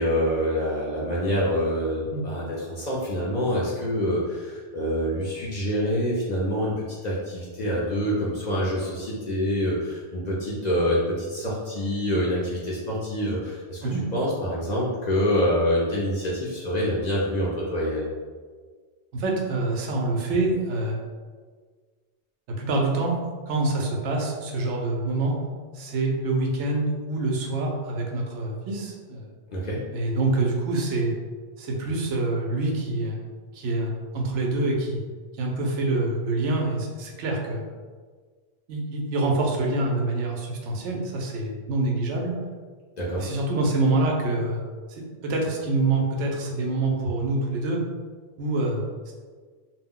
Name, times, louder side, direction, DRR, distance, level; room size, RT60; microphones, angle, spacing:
voice 1, 0.0-6.7 7.0-18.1 29.5-29.8 43.0-43.3, equal, 55° left, -6 dB, 0.5 m, -26 dB
voice 2, 19.1-21.0 22.5-23.2 23.5-25.3 25.7-29.3 29.9-31.1 31.6-33.2 33.5-35.0 35.4-37.7 38.7-42.3 43.2-44.6 44.9-47.8 48.4-49.1, right 2 dB, 90° right, 0 dB, 0.9 m, -26 dB
2.3 x 2.0 x 3.6 m, 1.5 s
omnidirectional pair, 1.2 m